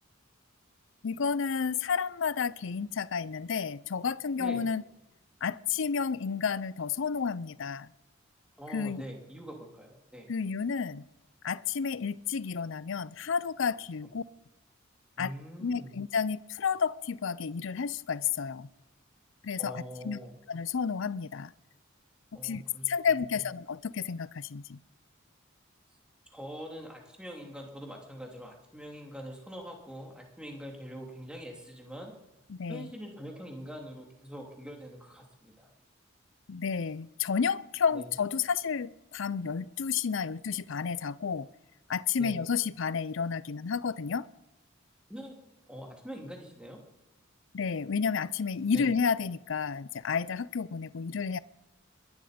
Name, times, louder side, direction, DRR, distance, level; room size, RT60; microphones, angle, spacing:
voice 1, 1.0-4.8 5.4-7.9 8.7-9.0 10.3-11.0 11.4-14.2 15.2-15.3 15.6-18.7 19.4-20.2 20.5-21.5 22.4-24.8 32.5-32.9 36.5-41.5 41.9-44.3 47.5-51.4, left 6 dB, 65° left, 0.5 m, -31 dB
voice 2, 8.6-10.3 15.2-15.9 19.6-20.4 22.3-22.9 23.2-23.4 26.3-32.1 32.7-35.7 37.9-38.0 42.2-42.4 45.1-45.4 45.7-46.8 48.7-48.9, equal, 5° right, 3.0 m, -44 dB
21.5 x 11.5 x 5.1 m
head